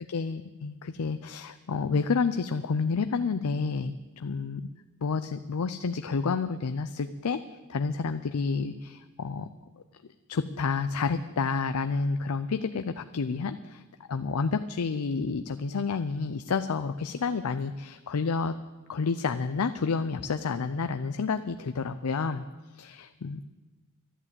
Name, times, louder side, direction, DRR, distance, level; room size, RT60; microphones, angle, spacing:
voice 1, 0.0-4.7 5.0-7.4 7.7-9.5 10.3-13.8 14.1-18.5 18.9-22.5 22.7-23.5, left 4 dB, 85° left, 10 dB, 0.5 m, -30 dB
12.5 x 11.0 x 8.2 m, 1.3 s
head